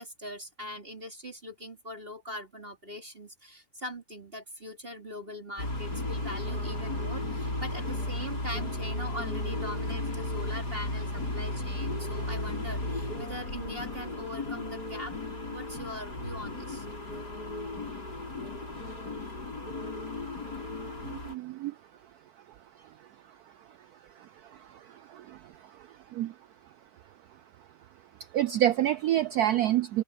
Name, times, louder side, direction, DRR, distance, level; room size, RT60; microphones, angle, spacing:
voice 1, 0.0-15.1 15.5-16.9, equal, 30° right, 3.5 m, -41 dB
sound 1, 5.6-21.3, left 2 dB, 55° left, 7.3 m, -35 dB
voice 2, 21.0-21.8 22.8-23.1 23.7-23.8 24.2-26.3 28.3-30.0, right 12 dB, 75° right, 0.8 m, -29 dB
omnidirectional pair, 2.1 m